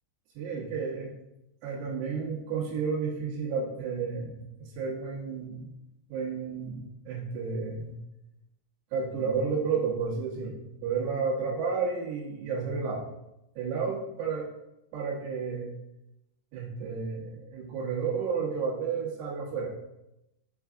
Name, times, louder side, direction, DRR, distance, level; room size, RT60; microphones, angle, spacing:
voice 1, 0.4-1.1 1.6-5.7 6.1-8.0 8.9-13.0 13.6-14.5 14.9-15.7 16.5-19.7, right 5 dB, 70° right, -3 dB, 2.9 m, -32 dB
6.9 x 4.7 x 3.6 m, 0.89 s
omnidirectional pair, 5.9 m